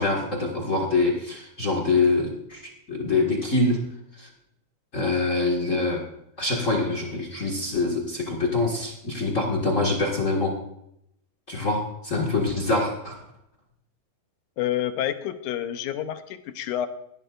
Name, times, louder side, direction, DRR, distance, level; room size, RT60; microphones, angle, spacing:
voice 1, 0.0-2.6 2.9-3.8 4.2-4.3 4.9-6.1 6.4-10.6 11.5-13.2, left 3 dB, 30° left, 1 dB, 1.7 m, -25 dB
voice 2, 14.6-16.9, left 11 dB, 85° left, 9 dB, 2.3 m, -28 dB
18.0 x 12.0 x 2.5 m, 0.77 s
omnidirectional pair, 3.4 m